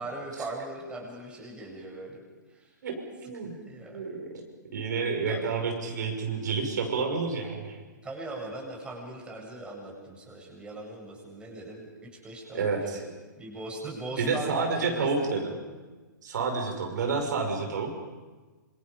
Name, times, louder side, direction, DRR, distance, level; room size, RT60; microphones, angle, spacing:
voice 1, 0.0-2.2 2.5-2.7 3.2-4.0 5.3-5.5 8.0-15.8, right 2 dB, 10° right, -2 dB, 7.9 m, -40 dB
voice 2, 3.2-3.5 3.9-4.3 4.7-7.8 12.5-12.8 14.2-15.4 16.2-17.9, right 4 dB, 65° right, 2 dB, 6.1 m, -29 dB
28.0 x 28.0 x 5.3 m, 1.3 s
hypercardioid pair, 125°, 11 cm